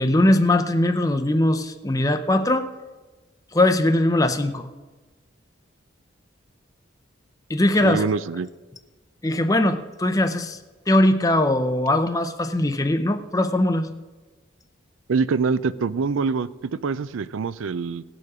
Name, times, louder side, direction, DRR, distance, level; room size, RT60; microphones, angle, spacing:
voice 1, 0.0-2.7 3.5-4.7 7.5-8.0 9.2-10.6 10.9-13.9, left 1 dB, 20° left, 8 dB, 0.6 m, -20 dB
voice 2, 7.8-8.5 15.1-18.0, right 4 dB, 85° right, 16 dB, 0.4 m, -25 dB
18.0 x 6.9 x 4.9 m, 1.2 s
head